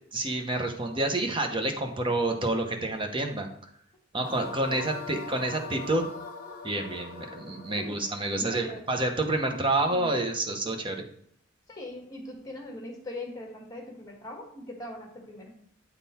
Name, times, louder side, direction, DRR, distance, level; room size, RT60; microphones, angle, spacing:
voice 1, 0.1-3.5 4.1-6.0 6.6-11.0, right 2 dB, 25° right, 4 dB, 0.8 m, -28 dB
sound 1, 4.2-9.4, left 4 dB, 45° left, 1.1 m, -42 dB
voice 2, 4.2-4.9 7.8-8.8 9.4-10.2 11.7-15.6, left 1 dB, 20° left, 1 dB, 1.4 m, -42 dB
8.3 x 3.7 x 4.2 m, 0.66 s
head